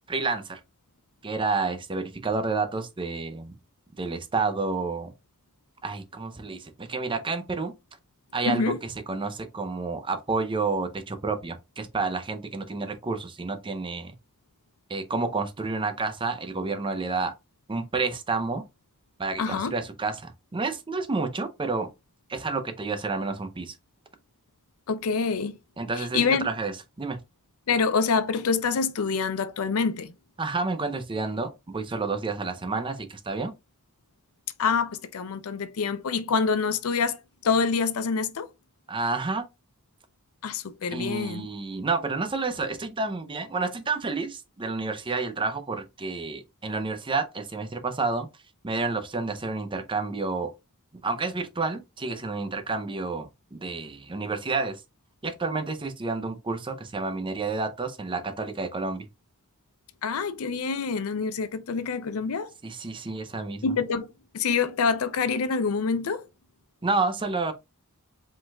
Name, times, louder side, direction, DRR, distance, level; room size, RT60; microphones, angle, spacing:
voice 1, 0.1-0.6 1.2-3.5 4.0-5.1 5.8-7.7 8.3-14.1 14.9-17.3 17.7-18.6 19.2-21.9 22.3-23.8 25.8-27.2 30.4-33.5 38.9-39.4 40.9-48.3 48.6-50.5 51.0-54.8 55.2-59.1 62.6-63.7 66.8-67.5, right 3 dB, 25° right, 0.5 m, -30 dB
voice 2, 8.5-8.8 19.4-19.7 24.9-25.6 26.0-26.5 27.7-30.1 34.6-38.5 40.4-41.5 60.0-62.5 63.6-64.1 64.3-66.2, left 5 dB, 70° left, 0.5 m, -26 dB
5.1 x 3.8 x 2.3 m
head